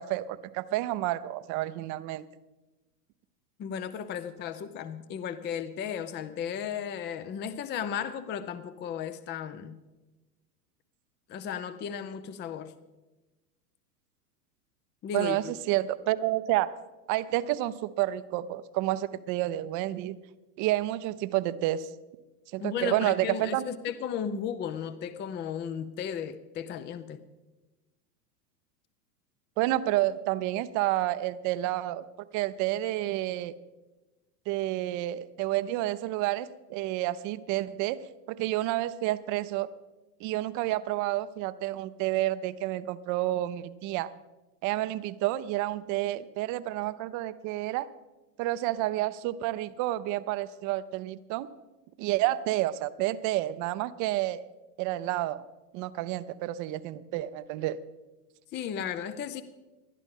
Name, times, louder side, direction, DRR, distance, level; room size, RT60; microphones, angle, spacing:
voice 1, 0.0-2.3 15.1-16.8 17.1-20.2 20.6-21.9 22.5-23.6 29.6-32.0 32.3-33.5 34.5-38.0 38.3-39.7 40.2-44.1 44.6-47.9 48.4-51.5 52.0-54.4 54.8-55.4 55.7-57.8, right 15 dB, 40° right, 15 dB, 0.7 m, -29 dB
voice 2, 3.6-9.8 11.3-12.7 15.0-15.4 22.6-27.2 58.5-59.4, left 8 dB, 20° left, 12 dB, 0.6 m, -35 dB
20.0 x 11.5 x 3.7 m, 1.1 s
hypercardioid pair, 100°, 48 cm